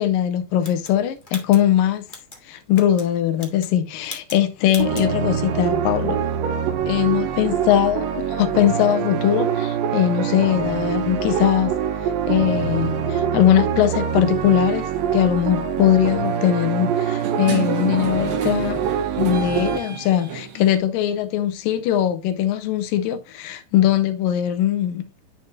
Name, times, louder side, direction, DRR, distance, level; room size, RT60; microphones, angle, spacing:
voice 1, 0.0-2.1 2.5-6.2 6.9-11.7 12.3-18.8 19.2-25.2, left 11 dB, 85° left, 2.5 m, -21 dB
sound 1, 0.6-2.4 2.7-3.1 3.3-3.8 4.0-4.4 4.7-5.1, left 2 dB, 50° left, 0.5 m, -38 dB
sound 2, 4.8-19.8, right 8 dB, 90° right, 2.7 m, -24 dB
sound 3, 13.9-14.1 15.1-15.3 15.7-20.8, right 7 dB, 60° right, 1.4 m, -32 dB
9.0 x 5.9 x 2.9 m
omnidirectional pair, 3.9 m